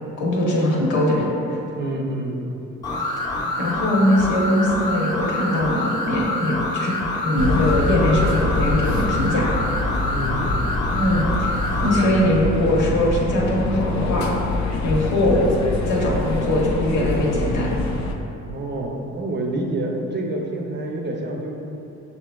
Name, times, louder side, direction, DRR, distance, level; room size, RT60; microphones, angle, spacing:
voice 1, 0.2-1.6 3.6-7.0 7.2-9.4 10.9-11.5 11.8-14.3 14.8-15.5 15.8-17.8, left 1 dB, 85° left, -4 dB, 1.0 m, -21 dB
voice 2, 1.7-2.4 10.1-10.5 18.4-21.5, right 1 dB, 35° right, 0 dB, 0.6 m, -27 dB
sound 1, 2.8-12.1, left 1 dB, 15° left, 0.7 m, -26 dB
sound 2, 7.4-18.2, left 2 dB, 70° left, 0.5 m, -25 dB
6.4 x 2.8 x 2.3 m, 2.9 s
cardioid pair, 90°, 30 cm